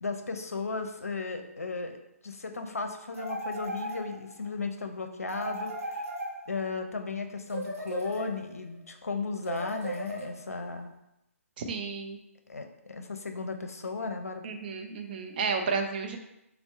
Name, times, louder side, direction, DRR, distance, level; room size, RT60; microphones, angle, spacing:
voice 1, 0.0-6.0 6.5-10.9 12.5-14.5, left 4 dB, 80° left, 6 dB, 0.6 m, -35 dB
sound 1, 3.1-4.4 5.3-6.8 7.5-8.7 9.4-10.6, right 1 dB, 75° right, 1.0 m, -37 dB
voice 2, 11.6-12.2 14.4-16.2, right 5 dB, 40° right, 3 dB, 0.5 m, -32 dB
4.2 x 2.1 x 4.4 m, 0.85 s
figure-of-eight pair, 140°, 8 cm